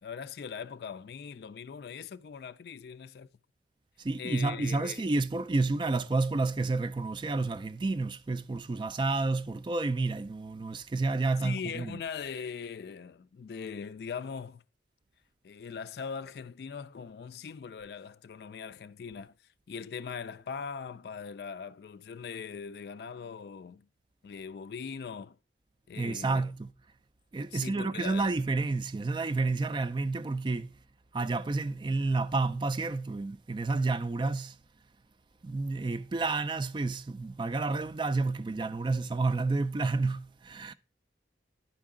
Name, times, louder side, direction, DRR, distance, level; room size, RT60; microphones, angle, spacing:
voice 1, 0.0-3.3 4.2-5.1 11.4-14.6 15.4-19.3 19.7-23.9 24.2-25.4 25.9-26.5 27.5-28.3, left 6 dB, 60° left, 0.3 m, -40 dB
voice 2, 4.0-12.0 26.0-26.7 27.3-30.8 31.1-34.6 35.4-40.7, right 3 dB, 25° right, 0.3 m, -30 dB
10.5 x 4.7 x 3.6 m
head